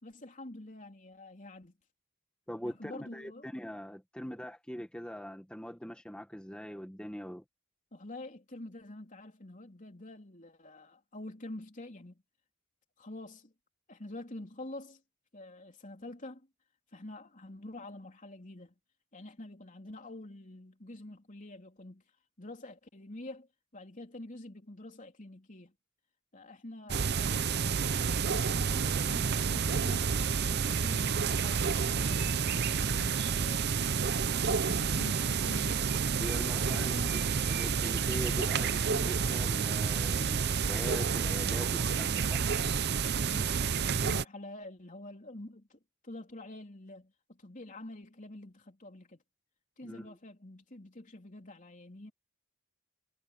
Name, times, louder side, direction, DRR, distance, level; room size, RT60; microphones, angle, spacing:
voice 1, 0.0-1.8 2.6-3.5 7.9-12.2 13.0-13.5 13.9-15.0 15.3-16.5 16.9-18.7 19.1-22.0 22.4-25.7 26.3-30.1 30.4-33.7 34.5-35.8 36.7-37.6 43.1-49.2 49.8-52.1, left 1 dB, 35° left, 3.5 m, -47 dB
voice 2, 2.5-7.4 36.2-37.2 37.5-42.5 49.8-50.1, equal, 5° left, 1.5 m, -42 dB
sound 1, 26.9-44.2, right 6 dB, 50° right, 0.6 m, -29 dB
head